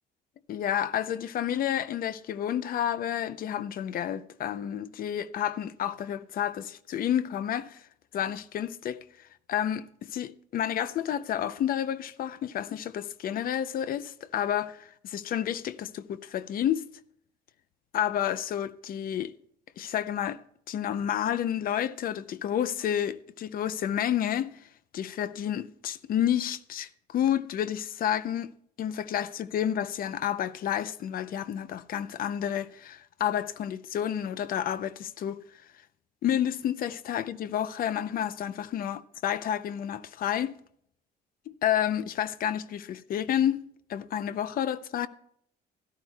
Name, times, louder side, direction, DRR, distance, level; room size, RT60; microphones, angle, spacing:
voice 1, 0.5-7.8 8.1-9.0 9.5-16.9 17.9-19.3 19.8-20.4 20.7-24.6 24.9-28.5 28.8-35.4 36.2-40.5 41.5-45.1, left 10 dB, 55° left, 0.6 m, -30 dB
16.5 x 12.0 x 2.3 m
cardioid pair, 115°, 18 cm